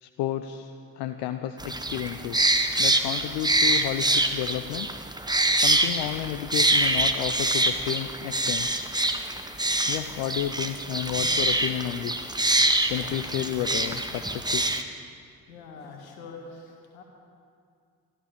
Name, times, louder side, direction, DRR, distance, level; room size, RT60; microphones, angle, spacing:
voice 1, 0.0-2.5 2.8-4.9 5.2-8.8 9.9-12.3 12.9-14.6, left 12 dB, 70° left, 8 dB, 0.7 m, -32 dB
sound 1, 1.6-14.8, right 1 dB, 10° right, 1.1 m, -25 dB
voice 2, 15.5-17.0, left 4 dB, 85° left, 2 dB, 1.9 m, -44 dB
13.5 x 13.5 x 6.8 m, 2.3 s
hypercardioid pair, 45°, 41 cm